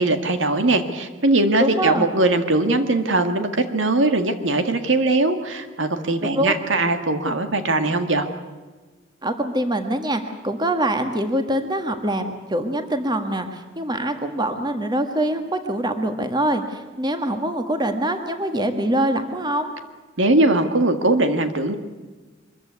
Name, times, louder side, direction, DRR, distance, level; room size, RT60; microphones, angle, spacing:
voice 1, 0.0-8.3 20.2-21.7, right 2 dB, 70° right, 8 dB, 1.8 m, -20 dB
voice 2, 1.6-2.1 6.3-6.5 9.2-19.7, right 1 dB, 20° right, 7 dB, 1.6 m, -24 dB
24.0 x 14.5 x 9.6 m, 1.3 s
head